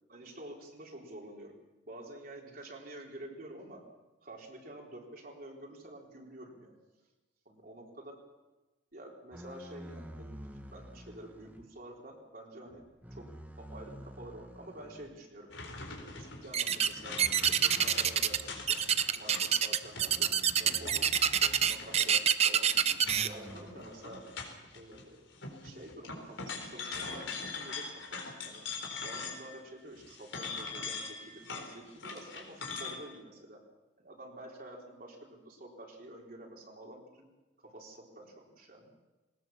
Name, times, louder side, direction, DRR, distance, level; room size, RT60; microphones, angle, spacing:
voice 1, 0.1-1.6 1.9-3.8 4.2-6.7 7.5-8.2 8.9-10.5 10.7-12.8 13.1-13.3 13.6-15.5 15.9-18.8 19.2-22.8 23.2-24.3 24.7-25.3 25.6-28.7 29.0-33.6 34.0-37.3 37.6-38.9, right 1 dB, 50° right, 0 dB, 3.8 m, -49 dB
sound 1, 9.3-11.7 12.7-15.2 15.6-15.9 17.0-19.1 20.1-22.1 23.0-23.8, equal, 10° right, 1.6 m, -50 dB
sound 2, 15.5-25.0 25.3-29.6 30.0-33.0, left 4 dB, 85° left, 4.2 m, -43 dB
sound 3, 16.5-16.9 17.2-18.4 18.7-23.3, right 8 dB, 35° right, 0.7 m, -26 dB
20.0 x 19.5 x 7.2 m, 1.1 s
head